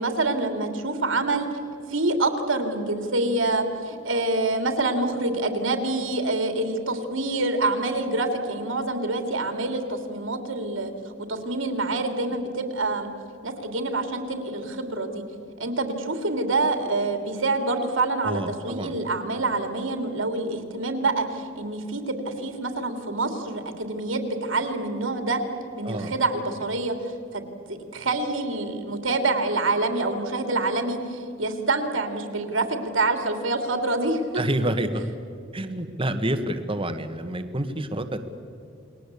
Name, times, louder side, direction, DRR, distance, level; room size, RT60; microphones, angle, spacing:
voice 1, 0.0-1.5 1.9-10.9 11.3-13.1 13.4-15.2 15.6-25.4 25.8-27.4 27.7-34.2, right 2 dB, 70° right, 6 dB, 3.1 m, -26 dB
voice 2, 18.2-19.0 25.8-26.4 34.3-35.0 35.5-38.2, right 1 dB, 25° right, 9 dB, 1.6 m, -28 dB
29.5 x 21.5 x 8.5 m, 2.4 s
head